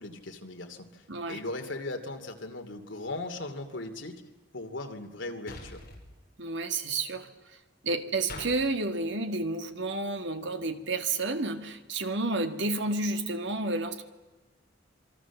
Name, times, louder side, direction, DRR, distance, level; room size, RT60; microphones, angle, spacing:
voice 1, 0.0-4.2 4.5-5.8, left 2 dB, 80° left, 5 dB, 2.6 m, -38 dB
voice 2, 1.1-1.4 6.4-7.6 7.8-14.0, right 2 dB, 70° right, 7 dB, 1.9 m, -31 dB
sound 1, 5.5-6.0 8.3-8.5, left 2 dB, 50° left, 4.9 m, -42 dB
27.0 x 21.5 x 7.2 m, 1.2 s
head